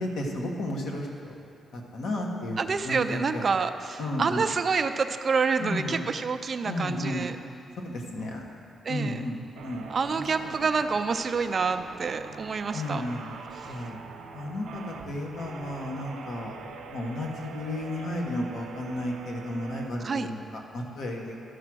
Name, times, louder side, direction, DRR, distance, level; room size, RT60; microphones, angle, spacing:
voice 1, 0.0-1.3 1.7-3.4 4.0-4.4 5.6-6.1 6.6-7.3 7.8-8.4 8.9-10.5 12.7-13.4 13.6-14.0 14.3-16.6 16.9-21.3, left 1 dB, 70° left, 0 dB, 1.3 m, -33 dB
voice 2, 2.6-7.3 8.8-9.2 9.9-13.0 20.0-20.3, right 5 dB, 40° right, 9 dB, 0.4 m, -27 dB
sound 1, 9.6-19.9, right 5 dB, 85° right, 0.8 m, -43 dB
13.5 x 4.9 x 6.1 m, 2.6 s
cardioid pair, 140°, 0 cm